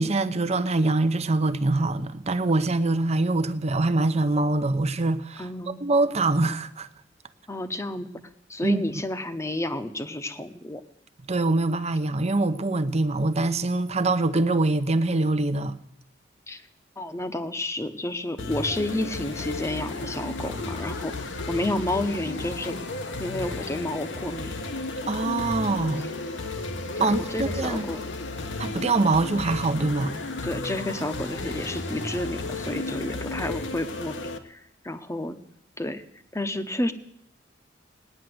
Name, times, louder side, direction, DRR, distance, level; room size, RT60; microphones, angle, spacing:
voice 1, 0.0-6.9 8.6-8.8 11.3-15.8 25.1-26.1 27.0-27.9 28.6-30.2, right 2 dB, 35° right, 0.9 m, -24 dB
voice 2, 5.4-5.8 7.5-8.1 8.5-10.8 16.5-16.6 17.0-22.8 23.2-24.5 26.0-26.1 27.0-28.0 30.4-35.4 35.8-36.0 36.3-36.9, left 1 dB, 15° left, 1.0 m, -31 dB
sound 1, 18.4-34.4, left 2 dB, 75° left, 1.3 m, -33 dB
18.0 x 10.0 x 7.8 m
head